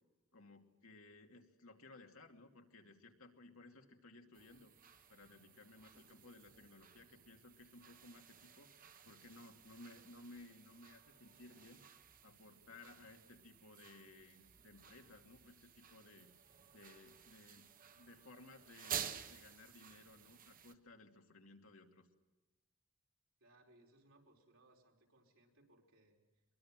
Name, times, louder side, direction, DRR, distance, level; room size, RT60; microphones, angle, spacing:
voice 1, 0.3-4.7 5.1-11.8 12.2-16.3 16.7-17.7 18.0-22.1, left 2 dB, 80° left, 3 dB, 2.5 m, -59 dB
sound 1, 4.3-20.8, right 8 dB, 40° right, 1.3 m, -52 dB
voice 2, 5.9-6.4 23.4-26.2, right 1 dB, 75° right, 1 dB, 4.8 m, -68 dB
23.0 x 22.5 x 7.6 m, 1.2 s
head